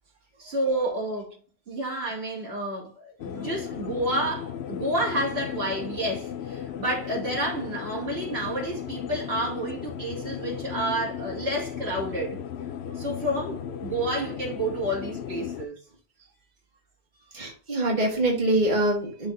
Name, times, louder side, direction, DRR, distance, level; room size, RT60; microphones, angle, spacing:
voice 1, 0.4-1.3 1.7-12.4 13.0-15.8, right 1 dB, 80° right, 3.0 m, -30 dB
sound 1, 3.2-15.7, left 9 dB, 80° left, 0.9 m, -35 dB
voice 2, 17.3-19.3, right 1 dB, 45° right, 1.8 m, -24 dB
10.5 x 3.9 x 2.6 m
omnidirectional pair, 1.1 m